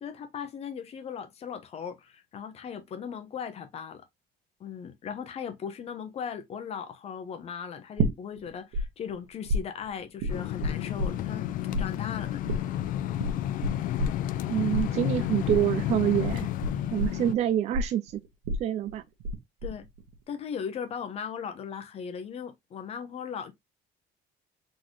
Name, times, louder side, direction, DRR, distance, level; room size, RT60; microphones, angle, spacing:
voice 1, 0.0-4.1 4.6-11.5 11.8-12.6 19.6-19.9 20.3-23.5, left 7 dB, 35° left, 0.9 m, -38 dB
sound 1, 8.0-8.8 9.1-11.5 11.7-19.4 19.6-20.1, right 1 dB, 90° right, 1.5 m, -30 dB
sound 2, 10.3-17.3, left 12 dB, 50° left, 0.4 m, -31 dB
voice 2, 14.5-16.5 16.9-18.2 18.6-19.0, right 11 dB, 40° right, 0.4 m, -26 dB
4.1 x 3.8 x 3.1 m
cardioid pair, 175°, 18 cm